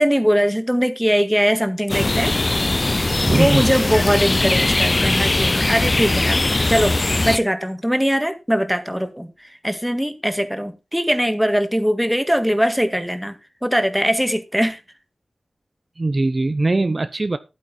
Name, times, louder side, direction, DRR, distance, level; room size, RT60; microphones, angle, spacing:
voice 1, 0.0-2.3 3.3-6.4 6.7-7.0 7.2-13.3 13.6-14.8, equal, ahead, 1.8 m, -21 dB
sound 1, 1.9-7.4, left 2 dB, 35° left, 0.5 m, -20 dB
voice 2, 3.2-3.6 16.0-17.4, right 2 dB, 40° right, 0.7 m, -20 dB
11.5 x 9.3 x 4.2 m
wide cardioid pair, 80°, 0 cm